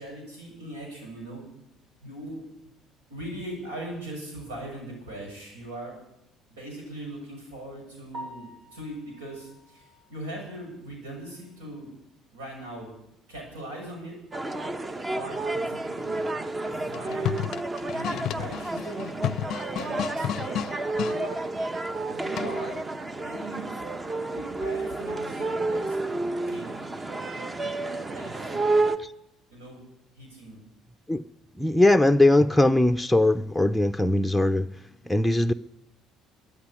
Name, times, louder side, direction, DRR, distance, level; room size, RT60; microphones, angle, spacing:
voice 1, 0.0-1.4 2.0-2.4 3.1-6.0 6.5-11.9 12.3-12.9 13.3-14.2 15.0-16.2 16.6-17.4 17.9-19.2 19.7-20.7 21.1-21.4 22.0-22.8 23.2-23.8 24.3-26.0 26.5-26.8 28.1-28.5 29.5-29.9 30.2-30.6, right 1 dB, 90° right, 1 dB, 6.7 m, -40 dB
Piano, 8.1-12.1 12.5-12.6 13.1-13.2 13.5-13.6 16.7-16.8 25.3-25.5, equal, 70° right, 3.8 m, -48 dB
sound 1, 14.3-29.0, right 2 dB, 25° right, 1.1 m, -30 dB
sound 2, 16.8-21.2 22.4-22.8, left 11 dB, 60° left, 0.5 m, -32 dB
voice 2, 31.6-34.7 35.1-35.5, left 1 dB, 5° left, 7 dB, 0.7 m, -20 dB
13.0 x 9.7 x 9.8 m, 0.80 s
hypercardioid pair, 65°, 0 cm